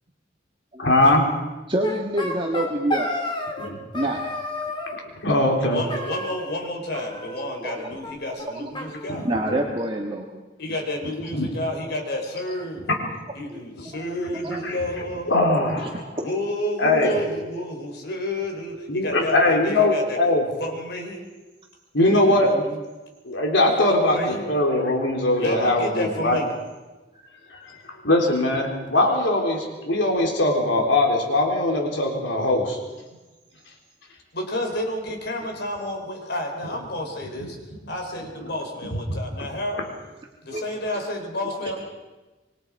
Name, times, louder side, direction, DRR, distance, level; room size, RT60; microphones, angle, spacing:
voice 1, 0.8-1.2 3.6-3.8 4.9-5.8 11.3-11.5 14.6-14.8 15.3-16.0 16.8-17.1 18.9-20.5 21.9-22.5 23.3-26.4 27.9-32.8 37.4-37.5 38.9-39.2, left 2 dB, 80° left, 1 dB, 3.8 m, -21 dB
voice 2, 1.7-3.1 3.9-4.3 7.6-7.9 8.3-8.7 9.2-10.3 13.5-13.6 14.4-14.6 15.8-16.0 40.5-40.6 41.6-41.8, right 1 dB, 30° right, 0 dB, 1.8 m, -27 dB
sound 1, 1.8-3.7 3.9-5.0 5.9-6.7 6.9-7.8 8.0-8.1 8.4-8.5 8.7-9.8, left 1 dB, 25° left, 3.2 m, -31 dB
voice 3, 5.7-9.3 10.6-12.9 13.4-15.4 16.2-20.2 20.6-21.3 22.0-22.8 23.9-24.5 25.4-26.5 34.3-37.6 37.9-39.9 40.4-41.8, left 1 dB, 65° left, 3 dB, 4.1 m, -30 dB
25.5 x 23.0 x 4.9 m, 1.2 s
head